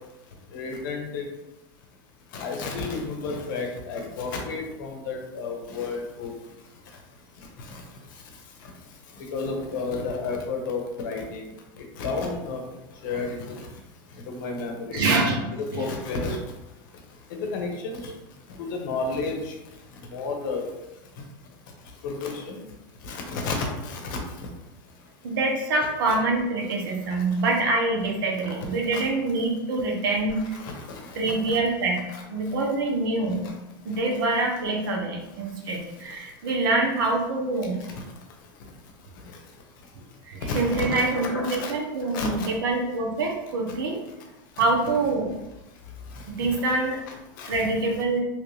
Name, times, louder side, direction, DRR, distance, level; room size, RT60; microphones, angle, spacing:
voice 1, 0.5-1.2 2.3-6.3 7.6-7.8 9.2-12.6 13.0-13.7 14.3-15.1 15.7-16.4 17.4-18.1 18.6-19.5 20.1-20.7 22.0-22.6 23.0-24.2 27.4-27.5 28.9-29.0 30.5-31.2 31.5-31.6 32.1-32.2 40.5-41.7 42.1-42.5 46.1-46.8 47.1-47.7, left 3 dB, 70° left, 2 dB, 0.8 m, -32 dB
voice 2, 14.9-15.4 15.7-15.8 25.2-30.6 31.1-32.0 32.3-33.4 33.8-37.8 39.9-44.0 44.6-45.4 46.3-47.0 47.5-48.2, right 2 dB, 80° right, 0 dB, 0.9 m, -25 dB
3.1 x 2.6 x 3.2 m, 0.97 s
supercardioid pair, 135°, 11 cm